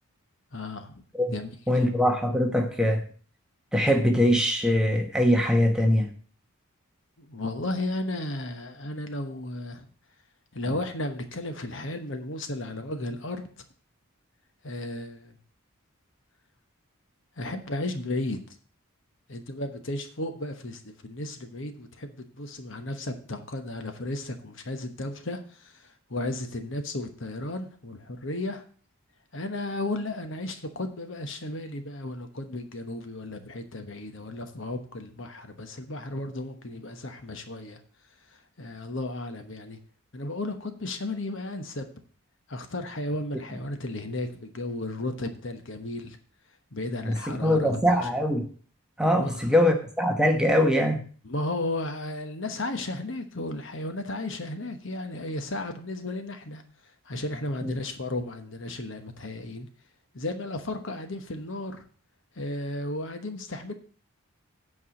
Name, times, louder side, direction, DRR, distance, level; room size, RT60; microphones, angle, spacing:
voice 1, 0.5-1.0 1.3-1.5 7.2-9.9 10.5-13.5 14.6-15.4 17.4-18.6 19.3-28.6 29.3-37.8 38.6-39.8 40.1-41.9 42.5-46.2 46.7-48.0 49.1-49.6 51.2-56.6 57.0-59.7 60.1-61.8 62.4-63.7, left 2 dB, 60° left, 7 dB, 1.1 m, -34 dB
voice 2, 1.7-3.0 3.7-6.1 47.0-48.5 49.0-51.0 57.6-57.7, equal, 5° right, 3 dB, 1.0 m, -22 dB
8.5 x 4.8 x 7.5 m, 0.43 s
head